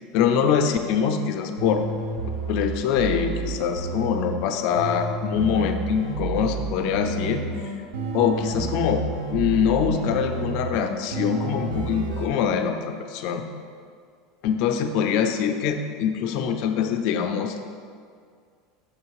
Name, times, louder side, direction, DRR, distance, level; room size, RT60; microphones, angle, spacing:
voice 1, 0.1-1.8 2.5-7.4 8.1-9.0 9.3-13.4 14.4-17.7, left 7 dB, 50° left, 6 dB, 0.4 m, -24 dB
sound 1, 1.6-4.4 4.8-12.3, right 3 dB, 90° right, 0.8 m, -30 dB
6.5 x 3.2 x 4.7 m, 2.1 s
supercardioid pair, 170°, 0 cm